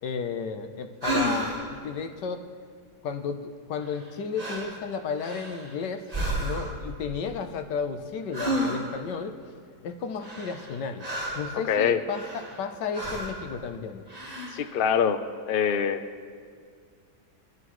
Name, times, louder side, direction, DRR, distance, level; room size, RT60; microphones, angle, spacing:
voice 1, 0.0-2.4 3.0-6.0 6.4-9.4 9.8-11.1 11.3-14.0, left 6 dB, 85° left, 7 dB, 1.5 m, -33 dB
sound 1, 1.0-1.8 3.8-4.1 4.4-4.8 5.2-5.7 6.1-6.8 8.3-9.1 10.2-11.5 12.1-12.6 12.9-13.4 14.1-14.7, right 1 dB, 20° right, 1.8 m, -31 dB
voice 2, 11.7-12.0 14.5-16.0, left 7 dB, 65° left, 10 dB, 0.5 m, -24 dB
23.0 x 13.0 x 3.1 m, 2.1 s
omnidirectional pair, 1.8 m